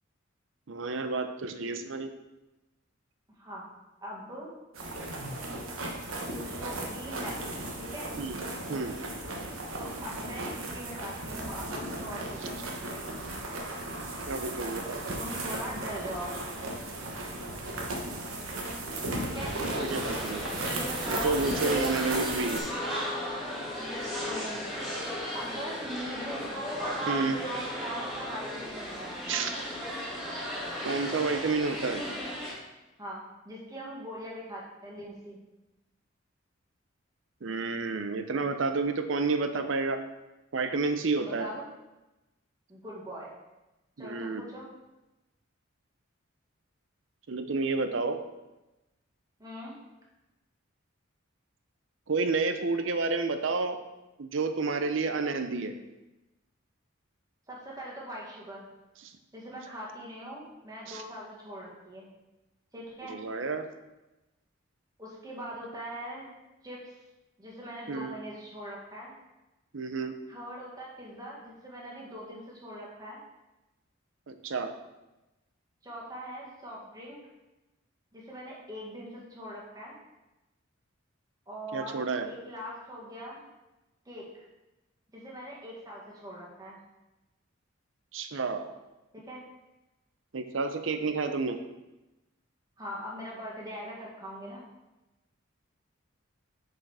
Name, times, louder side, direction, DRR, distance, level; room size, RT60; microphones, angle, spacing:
voice 1, 0.7-2.1 8.2-8.4 8.7-8.9 14.3-15.0 19.6-20.5 21.1-22.6 27.1-27.4 29.3-29.5 30.8-32.0 37.4-40.0 40.5-41.5 44.0-44.4 47.3-48.2 52.1-53.8 54.2-55.7 59.0-59.1 60.9-61.0 63.1-63.7 67.9-68.1 69.7-70.1 74.3-74.7 81.7-82.3 88.1-88.7 90.3-91.6, right 3 dB, 65° right, 8 dB, 0.6 m, -30 dB
voice 2, 4.0-4.5 6.3-7.4 7.8-8.1 9.8-13.1 15.2-16.3 19.2-19.6 20.7-21.5 24.3-24.6 25.3-29.2 33.0-35.4 41.2-41.7 42.7-43.4 44.0-44.7 49.4-49.7 57.5-58.7 59.3-62.1 62.7-63.2 65.0-66.3 66.6-67.0 67.4-69.1 70.3-73.2 75.8-77.2 78.1-80.0 81.5-83.4 84.1-84.3 85.1-86.8 89.3-89.4 92.8-94.6, equal, 20° right, -4 dB, 1.7 m, -41 dB
sound 1, 4.7-22.6, right 2 dB, 85° right, 1.2 m, -36 dB
sound 2, 19.3-32.5, equal, ahead, 2.1 m, -36 dB
sound 3, 19.5-28.7, left 2 dB, 20° left, 1.0 m, -43 dB
6.2 x 5.1 x 4.9 m, 1.0 s
head